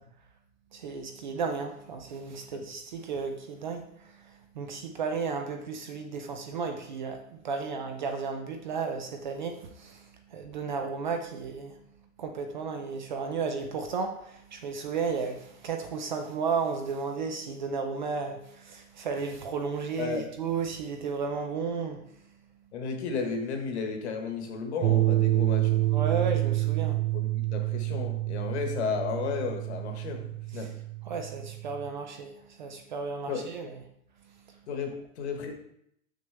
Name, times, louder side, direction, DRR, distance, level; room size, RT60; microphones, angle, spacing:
voice 1, 0.7-11.8 12.2-22.2 25.9-27.1 30.5-30.7 31.0-33.8 34.3-34.6, right 5 dB, 35° right, 5 dB, 0.5 m, -34 dB
voice 2, 20.0-20.3 22.7-25.8 27.1-30.7 33.3-33.4 34.7-35.5, left 5 dB, 55° left, 4 dB, 1.4 m, -33 dB
sound 1, 24.8-31.9, right 18 dB, 90° right, 1.0 m, -28 dB
6.5 x 6.4 x 3.4 m, 0.72 s
supercardioid pair, 170°, 40 cm